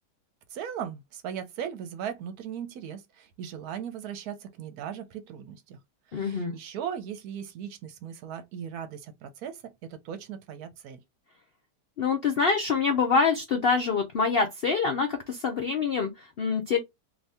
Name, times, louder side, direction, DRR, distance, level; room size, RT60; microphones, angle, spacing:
voice 1, 0.5-5.8 6.1-11.0, right 8 dB, 70° right, 1.1 m, -38 dB
voice 2, 6.1-6.5 12.0-16.8, left 5 dB, 85° left, 0.5 m, -25 dB
2.7 x 2.7 x 3.3 m
omnidirectional pair, 1.8 m